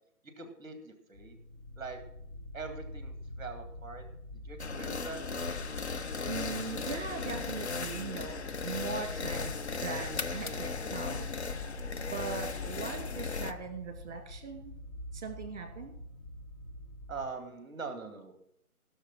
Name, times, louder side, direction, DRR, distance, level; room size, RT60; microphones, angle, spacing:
voice 1, 0.4-1.4 1.8-2.0 2.5-4.0 4.4-5.2 17.1-18.3, right 4 dB, 15° right, 7 dB, 2.0 m, -42 dB
sound 1, 1.1-17.3, left 1 dB, 30° left, 1.8 m, -46 dB
sound 2, 4.6-13.5, left 4 dB, 50° left, 0.7 m, -37 dB
voice 2, 6.2-11.3 12.0-14.7 15.1-15.9, right 5 dB, 30° right, 5 dB, 2.4 m, -40 dB
sound 3, 9.5-12.3, left 3 dB, 80° left, 1.3 m, -45 dB
15.5 x 6.7 x 6.1 m, 0.72 s
figure-of-eight pair, 150°, 44 cm